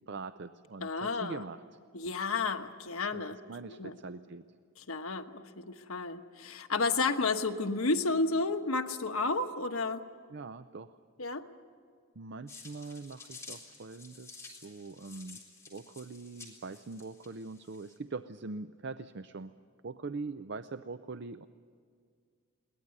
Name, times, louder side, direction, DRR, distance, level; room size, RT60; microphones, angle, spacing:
voice 1, 0.1-1.6 3.1-4.5 10.3-11.0 12.2-15.4 15.7-19.5 19.8-21.5, right 3 dB, 55° right, 11 dB, 0.5 m, -42 dB
voice 2, 0.8-1.4 1.9-3.4 3.7-4.0 4.8-10.1 11.2-11.4, left 3 dB, 85° left, 6 dB, 1.3 m, -32 dB
sound 1, 12.5-18.0, left 4 dB, 15° left, 3.8 m, -52 dB
22.0 x 18.5 x 9.6 m, 2.1 s
head